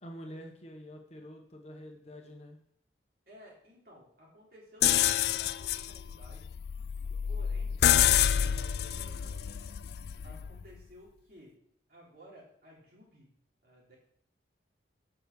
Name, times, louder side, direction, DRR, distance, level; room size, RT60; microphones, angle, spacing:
voice 1, 0.0-2.6, equal, 35° left, 2 dB, 1.3 m, -47 dB
voice 2, 3.3-6.4 7.3-7.8 8.4-9.8 10.2-11.6 11.9-13.3 13.6-13.9, equal, 55° right, -4 dB, 3.7 m, -55 dB
sound 1, 4.8-10.6, left 10 dB, 60° left, 0.3 m, -28 dB
7.7 x 6.2 x 6.7 m, 0.68 s
head